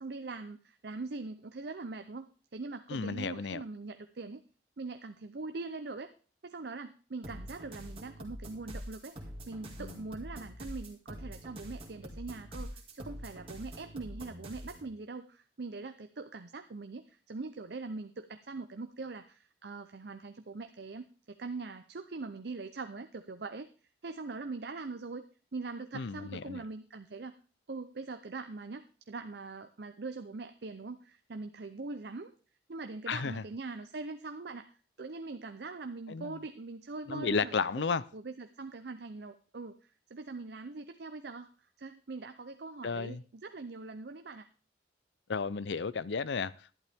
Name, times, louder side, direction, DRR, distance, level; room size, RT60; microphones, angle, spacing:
voice 1, 0.0-4.4 4.8-6.1 6.4-23.7 24.0-25.2 25.5-27.4 27.7-32.3 32.7-37.6 38.1-44.5, right 3 dB, 65° right, 0.6 m, -42 dB
voice 2, 2.9-3.6 9.8-10.0 25.9-26.6 33.1-33.4 36.1-36.4 37.1-38.0 42.8-43.2 45.3-46.8, left 5 dB, 75° left, 0.5 m, -33 dB
sound 1, 7.2-14.9, equal, 30° right, 2.1 m, -45 dB
11.5 x 11.0 x 3.5 m
head